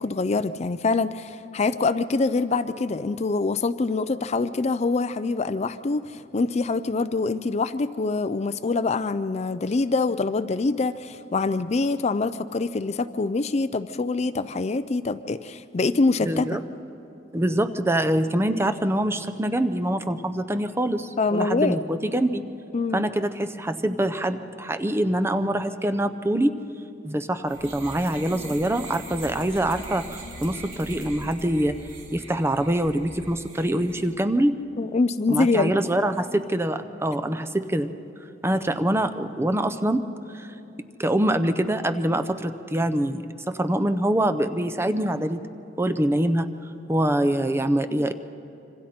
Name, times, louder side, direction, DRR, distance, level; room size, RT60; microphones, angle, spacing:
voice 1, 0.0-16.5 21.2-21.8 22.7-23.0 34.8-35.7, left 3 dB, 35° left, 12 dB, 0.4 m, -25 dB
voice 2, 16.2-16.6 17.3-22.4 22.9-26.5 27.0-31.8 32.1-34.6 35.3-37.9 38.4-40.0 40.3-40.5 41.0-45.5 45.8-46.5 46.9-48.1, right 1 dB, 15° right, 9 dB, 0.6 m, -24 dB
sound 1, 27.5-34.1, right 2 dB, 75° right, 2.8 m, -41 dB
26.5 x 25.0 x 4.3 m, 2.8 s
head